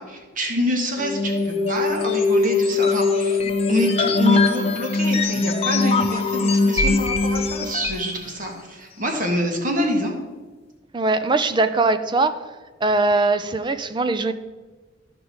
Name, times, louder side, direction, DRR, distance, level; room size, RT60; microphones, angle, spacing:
voice 1, 0.0-10.1, left 1 dB, 45° right, 2 dB, 1.7 m, -26 dB
sound 1, 1.0-8.1, left 3 dB, 30° left, 0.7 m, -21 dB
voice 2, 10.9-12.4 12.8-14.3, right 3 dB, 25° right, 10 dB, 0.5 m, -21 dB
13.5 x 5.2 x 4.7 m, 1.3 s
head